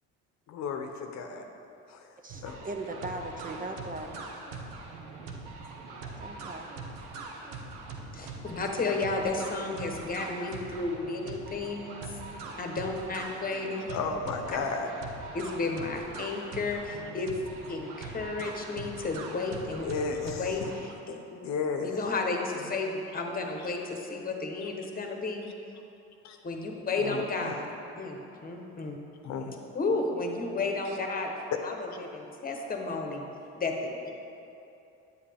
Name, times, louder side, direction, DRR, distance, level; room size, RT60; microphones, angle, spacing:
voice 1, 0.5-1.5 1.9-2.1 2.4-2.7 13.9-14.9 19.8-20.5 21.1-21.2 21.4-22.0 22.6-22.7 26.2-26.4 27.0-27.6 29.2-29.5 31.5-31.6, left 5 dB, 60° left, 4 dB, 0.8 m, -33 dB
voice 2, 2.2-4.1 6.2-6.7, right 2 dB, 25° right, 4 dB, 0.6 m, -38 dB
sound 1, 2.3-20.9, right 3 dB, 80° right, 1.1 m, -42 dB
voice 3, 8.1-12.0 12.6-13.9 15.3-17.3 17.7-19.9 20.4-21.4 21.8-25.5 26.4-27.6 28.0-29.0 29.7-31.3 31.6-33.2 33.6-33.7 34.0-34.1, left 3 dB, 25° left, 2 dB, 1.1 m, -32 dB
9.7 x 7.4 x 3.5 m, 2.8 s
supercardioid pair, 90°, 32 cm